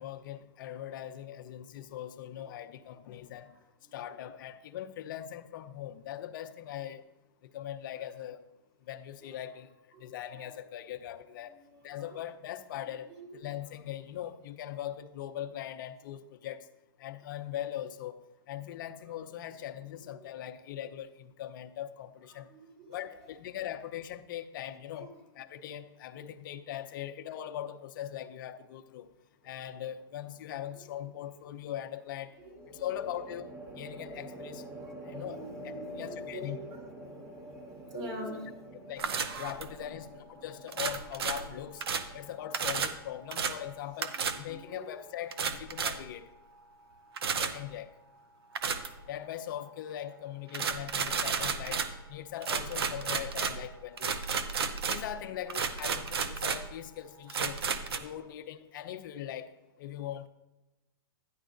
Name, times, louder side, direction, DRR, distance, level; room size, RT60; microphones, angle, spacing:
voice 1, 0.0-3.6 3.9-7.0 7.4-8.4 8.9-9.7 10.0-11.6 11.8-16.7 17.0-18.2 18.5-22.5 22.9-29.1 29.4-32.3 32.7-33.5 33.8-34.7 35.0-36.6 38.9-41.8 42.1-46.3 47.3-47.9 49.1-54.2 54.8-57.6 57.9-60.3, left 11 dB, 55° left, 8 dB, 0.7 m, -41 dB
voice 2, 11.4-12.2 12.8-13.5 20.6-20.7 22.3-23.3 25.0-25.2 30.7-31.0 32.3-33.1 34.7-36.9 37.4-38.5 39.2-39.3 39.7-39.9 40.7-40.9 44.1-45.0, right 1 dB, 40° right, -1 dB, 3.3 m, -47 dB
sound 1, 29.4-30.0 32.6-43.9, equal, 20° right, 1.3 m, -47 dB
sound 2, 39.0-39.8 40.7-42.1 42.5-43.0 43.3-43.6 44.0-44.4 45.3-46.1 47.2-47.6 48.5-49.0 50.5-52.0 52.4-55.2 55.5-56.7 57.3-58.0, right 6 dB, 80° right, 0.8 m, -32 dB
12.5 x 10.0 x 2.6 m, 1.1 s
hypercardioid pair, 140°, 13 cm